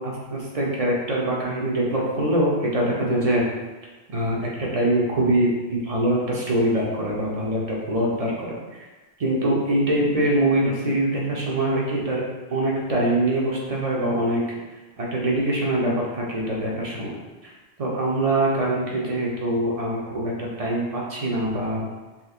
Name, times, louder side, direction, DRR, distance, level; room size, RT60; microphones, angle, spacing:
voice 1, 0.0-3.4 4.1-8.5 9.2-12.2 12.5-14.4 15.0-17.1 17.8-21.9, right 1 dB, 40° right, -4 dB, 0.8 m, -23 dB
4.2 x 2.7 x 2.4 m, 1.2 s
omnidirectional pair, 1.1 m